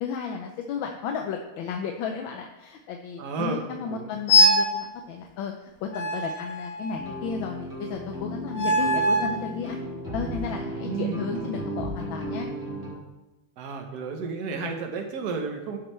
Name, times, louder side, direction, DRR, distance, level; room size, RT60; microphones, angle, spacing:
voice 1, 0.0-9.8 10.1-12.5, left 6 dB, 75° left, 3 dB, 1.3 m, -33 dB
voice 2, 3.2-4.2 10.7-11.2 13.6-15.8, right 4 dB, 55° right, 4 dB, 1.5 m, -32 dB
sound 1, 4.3-4.8 5.9-7.2 8.5-9.4, equal, 55° left, 1.1 m, -22 dB
sound 2, 7.0-12.9, right 1 dB, 10° right, 3.4 m, -35 dB
11.5 x 6.7 x 3.2 m, 1.1 s
omnidirectional pair, 2.3 m